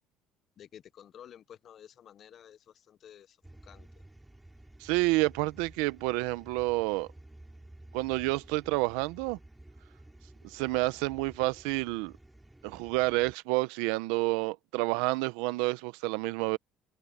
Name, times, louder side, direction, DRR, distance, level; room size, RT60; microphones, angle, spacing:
voice 1, 0.6-2.6 2.9-3.3 3.7-3.9, left 9 dB, 55° left, 0.9 m, -51 dB
sound 1, 3.4-13.3, right 1 dB, 10° right, 3.9 m, -53 dB
voice 2, 4.8-7.1 7.9-9.4 10.4-12.1 12.6-16.6, right 22 dB, 85° right, 0.9 m, -29 dB
supercardioid pair, 90°, 0 cm